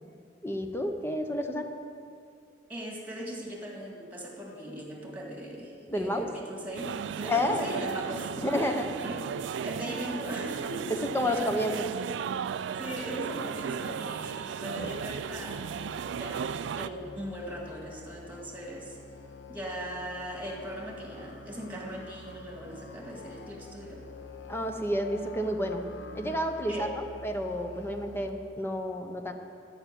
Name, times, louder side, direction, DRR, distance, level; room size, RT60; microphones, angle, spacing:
voice 1, 0.4-1.7 5.9-6.3 7.3-7.7 8.4-8.9 11.1-11.9 24.5-25.9 26.1-29.3, left 1 dB, 15° left, 5 dB, 0.7 m, -30 dB
voice 2, 2.7-8.3 9.0-9.3 9.6-11.7 12.5-15.7 16.1-19.0 19.5-24.1 26.7-26.9, equal, 10° right, -1 dB, 2.0 m, -39 dB
sound 1, 6.7-16.9, right 7 dB, 70° right, 0.3 m, -35 dB
Musical instrument, 14.8-28.3, left 3 dB, 70° left, 0.9 m, -47 dB
13.5 x 5.9 x 9.2 m, 2.4 s
head